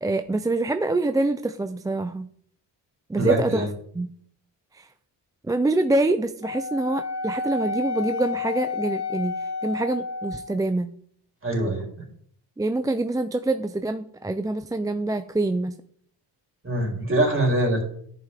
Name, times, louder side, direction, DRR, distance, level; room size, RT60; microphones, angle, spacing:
voice 1, 0.0-2.3 3.1-3.6 4.0-4.1 4.7-4.9 5.4-10.9 12.6-15.7, right 2 dB, 10° right, 9 dB, 0.4 m, -25 dB
voice 2, 3.2-3.7 11.4-11.8 16.6-17.8, right 1 dB, 25° right, 0 dB, 3.6 m, -23 dB
Wind instrument woodwind instrument, 6.4-10.6, left 4 dB, 60° left, 2.1 m, -30 dB
10.5 x 5.5 x 3.5 m, 0.62 s
supercardioid pair, 60°, 47 cm